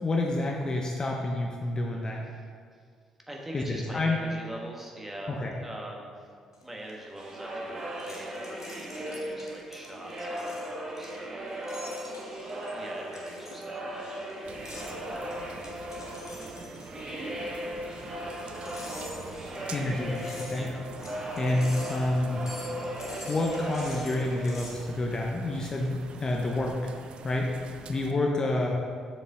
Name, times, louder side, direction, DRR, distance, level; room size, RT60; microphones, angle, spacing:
voice 1, 0.0-2.2 3.5-4.2 5.3-5.5 19.7-20.7 21.3-22.4 23.2-26.9 27.2-27.6 27.9-28.8, left 2 dB, 30° left, 0 dB, 0.9 m, -28 dB
voice 2, 3.3-5.3 5.6-6.3 6.6-11.5 12.7-14.3 14.7-15.3 16.9-17.2 17.6-18.7 20.5-20.8, right 1 dB, 10° right, -1 dB, 1.6 m, -44 dB
sound 1, 6.5-24.8, left 1 dB, 90° left, 0.8 m, -47 dB
sound 2, 7.2-25.0, equal, 35° right, 1.7 m, -37 dB
sound 3, 14.4-28.1, right 6 dB, 50° right, 0.4 m, -46 dB
7.1 x 6.5 x 4.0 m, 2.1 s
figure-of-eight pair, 45°, 2 cm